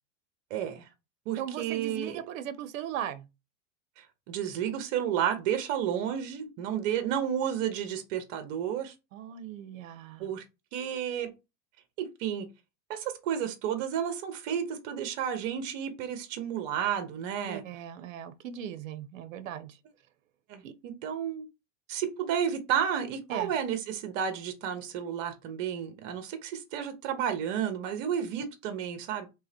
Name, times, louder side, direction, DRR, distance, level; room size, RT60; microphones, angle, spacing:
voice 1, 0.5-0.9 1.3-2.2 4.0-8.9 10.2-10.4 10.7-11.3 12.0-12.5 12.9-17.6 20.5-21.4 21.9-29.3, right 9 dB, 55° right, 1.0 m, -32 dB
voice 2, 1.4-3.3 9.1-10.3 17.4-19.8 20.6-20.7 23.3-23.5, right 10 dB, 85° right, 0.7 m, -38 dB
3.8 x 3.0 x 2.9 m
supercardioid pair, 125°, 39 cm